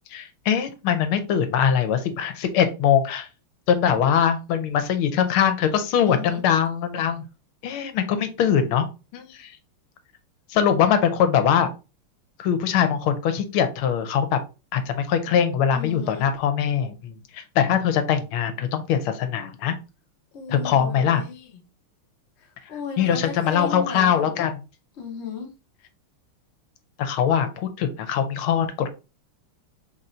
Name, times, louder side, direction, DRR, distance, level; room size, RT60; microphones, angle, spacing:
voice 1, 0.1-3.3 3.7-7.2 7.6-8.9 9.1-9.5 10.5-11.7 12.4-14.4 14.7-19.7 20.5-21.2 23.0-24.5 27.0-29.0, left 8 dB, 75° left, 9 dB, 1.5 m, -22 dB
voice 2, 6.0-6.4 15.7-16.3 20.3-21.6 22.4-24.5 25.0-25.5, left 6 dB, 55° left, 2 dB, 0.7 m, -36 dB
4.0 x 2.6 x 4.2 m, 0.31 s
omnidirectional pair, 2.4 m